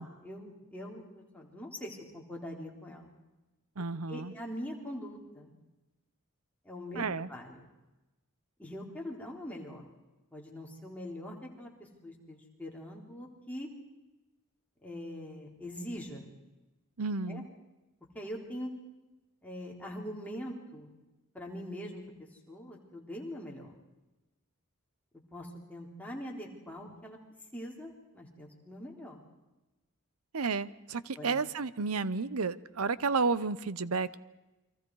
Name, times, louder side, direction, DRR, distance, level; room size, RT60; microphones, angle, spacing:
voice 1, 0.0-3.1 4.1-5.5 6.7-7.7 8.6-9.8 10.3-11.7 12.0-13.7 14.8-16.3 17.3-17.4 18.1-18.7 19.4-20.9 21.3-23.7 25.3-27.2 27.5-29.2 31.2-31.4, equal, 5° left, -2 dB, 3.6 m, -43 dB
voice 2, 3.8-4.3 7.0-7.3 17.0-17.5 30.3-34.2, right 4 dB, 85° right, 17 dB, 0.8 m, -32 dB
29.5 x 23.5 x 4.8 m, 1.1 s
head